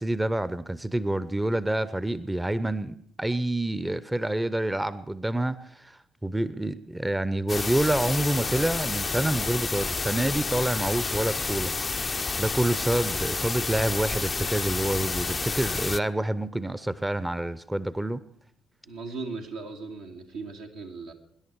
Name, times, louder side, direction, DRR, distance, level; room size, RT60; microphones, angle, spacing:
voice 1, 0.0-11.7 12.4-18.2, right 1 dB, 10° right, 15 dB, 0.7 m, -27 dB
sound 1, 7.5-16.0, left 4 dB, 30° left, 0.5 m, -30 dB
voice 2, 18.9-21.1, right 3 dB, 75° right, 0 dB, 1.9 m, -38 dB
24.0 x 11.0 x 4.7 m, 0.65 s
hypercardioid pair, 50°, 0 cm